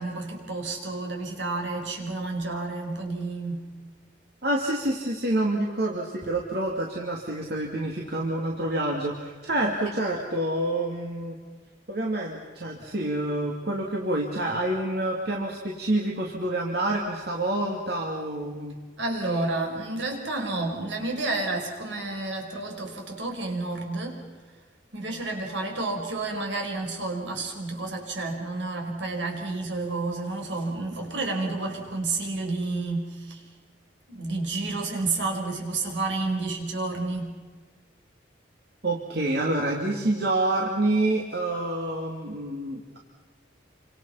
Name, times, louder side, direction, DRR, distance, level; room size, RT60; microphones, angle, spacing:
voice 1, 0.0-3.6 19.0-24.2 24.9-33.4 34.1-37.3, right 3 dB, 75° right, 2 dB, 5.2 m, -30 dB
voice 2, 4.4-11.4 11.9-18.7 38.8-43.0, right 1 dB, 55° right, -1 dB, 2.7 m, -27 dB
29.0 x 26.0 x 5.9 m, 1.4 s
head